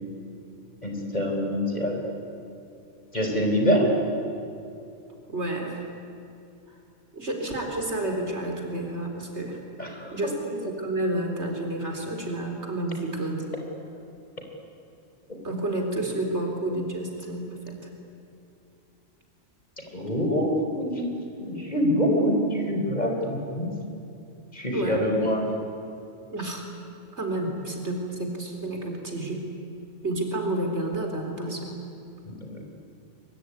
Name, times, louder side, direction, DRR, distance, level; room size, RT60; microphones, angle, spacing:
voice 1, 0.8-2.0 3.1-3.9 9.8-10.1 15.3-15.4 19.8-21.1 21.4-23.7 24.5-25.5 32.3-32.7, equal, 35° left, 2 dB, 4.5 m, -25 dB
voice 2, 5.3-5.8 7.1-9.6 10.1-13.6 15.4-17.8 24.7-25.1 26.3-26.6 27.2-29.4 30.0-31.7, right 1 dB, 60° right, 2 dB, 4.3 m, -30 dB
23.5 x 23.5 x 9.9 m, 2.6 s
omnidirectional pair, 1.3 m